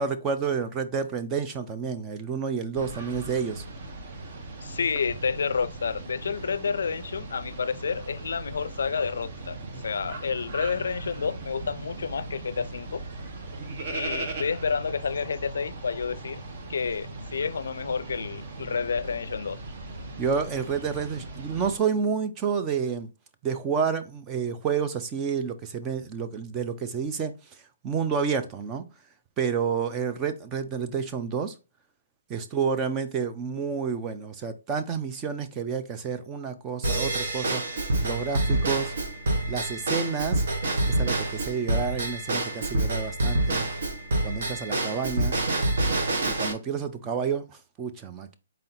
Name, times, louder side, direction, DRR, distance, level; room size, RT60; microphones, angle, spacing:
voice 1, 0.0-3.6 20.2-23.1 23.4-27.3 27.8-28.9 29.4-31.5 32.3-38.9 39.5-40.4 40.9-43.7 44.2-45.4 46.3-48.4, right 6 dB, 15° right, 0.3 m, -29 dB
sound 1, 2.7-21.8, right 2 dB, 35° right, 0.7 m, -39 dB
voice 2, 4.6-9.6 9.8-13.0 13.9-16.4 16.7-19.6, left 5 dB, 75° left, 0.3 m, -30 dB
Drum kit / Drum / Bell, 36.8-46.5, right 2 dB, 60° right, 1.0 m, -27 dB
4.2 x 2.7 x 3.8 m
hypercardioid pair, 175°, 0 cm